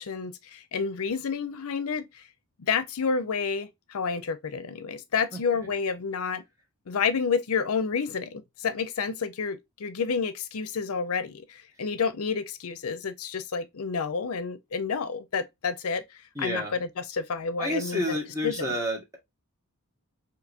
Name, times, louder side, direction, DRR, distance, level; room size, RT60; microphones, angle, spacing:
voice 1, 0.0-2.2 2.6-6.4 6.9-18.2 18.4-18.8, left 5 dB, 70° left, 0.5 m, -30 dB
voice 2, 16.3-16.8 17.6-19.2, left 1 dB, 15° right, 1.2 m, -29 dB
4.6 x 2.9 x 2.4 m
head